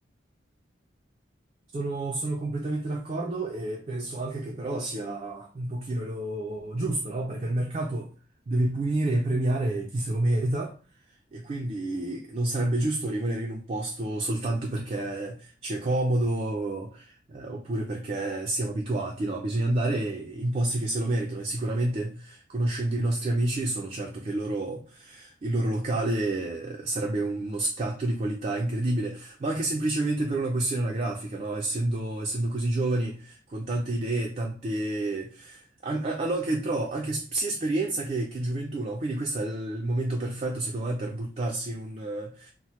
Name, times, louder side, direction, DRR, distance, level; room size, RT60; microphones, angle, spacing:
voice 1, 1.7-8.1 8.5-10.7 11.3-42.5, right 2 dB, 35° right, 0 dB, 0.3 m, -29 dB
2.8 x 2.0 x 3.0 m, 0.39 s
head